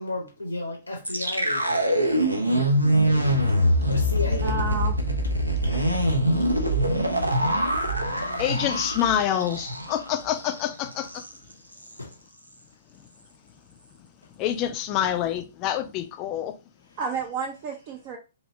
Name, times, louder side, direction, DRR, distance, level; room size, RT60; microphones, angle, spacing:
voice 1, 0.0-3.0 3.9-4.7 7.6-8.4 12.0-12.1, left 2 dB, 90° left, 0.7 m, -35 dB
sound 1, 1.0-10.1 10.4-10.5 10.9-11.3, equal, 85° right, 0.6 m, -23 dB
voice 2, 4.3-5.0 17.0-18.2, right 5 dB, 35° right, 0.5 m, -31 dB
voice 3, 8.4-11.2 14.4-16.6, left 11 dB, 30° left, 0.3 m, -27 dB
3.0 x 2.8 x 2.7 m
figure-of-eight pair, 115°, 0 cm